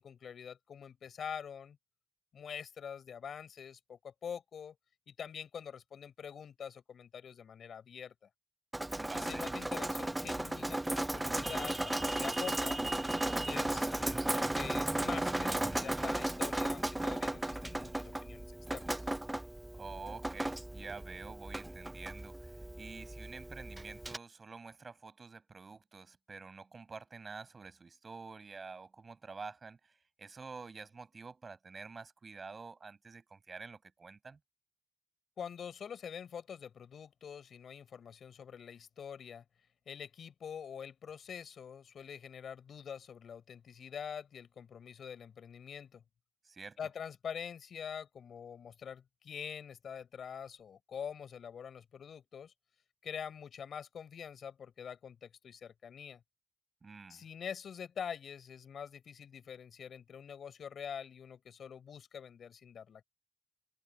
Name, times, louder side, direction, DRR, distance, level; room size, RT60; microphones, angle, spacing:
voice 1, 0.0-1.8 2.3-4.7 5.1-8.1 9.1-12.8 13.4-18.9 35.4-39.4 39.9-46.0 46.8-52.5 53.0-56.2 57.1-63.0, left 7 dB, 90° left, 4.7 m, -45 dB
Drip, 8.7-24.2, right 1 dB, 15° right, 0.5 m, -36 dB
voice 2, 8.9-9.5 19.7-34.4 46.4-46.8 56.8-57.3, right 4 dB, 50° right, 6.2 m, -48 dB
sound 1, 11.1-16.1, right 2 dB, 30° right, 5.8 m, -44 dB
cardioid pair, 80°, 0 cm